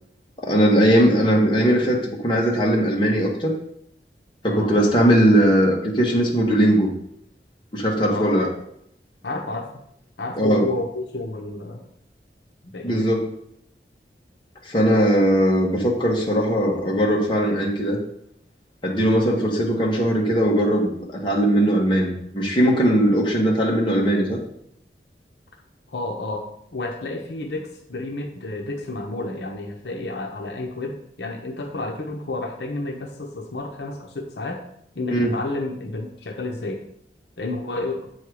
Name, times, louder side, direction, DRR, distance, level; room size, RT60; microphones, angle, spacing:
voice 1, 0.4-3.5 4.4-6.9 7.7-8.5 10.4-10.7 12.8-13.2 14.6-18.0 18.8-24.4 35.1-35.3, equal, 25° left, -2 dB, 1.4 m, -19 dB
voice 2, 4.4-4.7 8.1-8.4 9.2-9.8 10.2-11.8 12.7-13.2 19.1-19.4 25.9-34.6 34.9-36.8 37.4-38.1, left 2 dB, 75° left, 2 dB, 0.9 m, -31 dB
7.8 x 4.4 x 4.8 m, 0.72 s
head